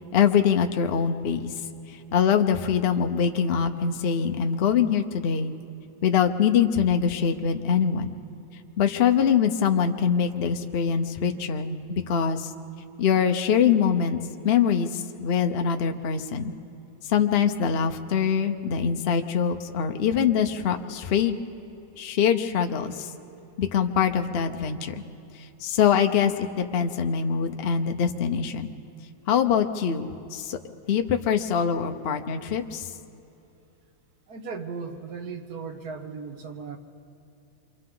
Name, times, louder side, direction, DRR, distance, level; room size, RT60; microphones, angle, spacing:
voice 1, 0.1-1.5 2.1-5.5 6.0-8.1 8.8-12.5 13.0-16.5 17.0-21.4 22.0-23.1 23.6-24.9 25.6-28.7 29.3-30.6 30.9-32.9, left 7 dB, 85° left, 6 dB, 0.5 m, -23 dB
voice 2, 34.3-36.8, right 5 dB, 55° right, 5 dB, 1.5 m, -36 dB
28.0 x 25.0 x 3.9 m, 2.7 s
omnidirectional pair, 2.3 m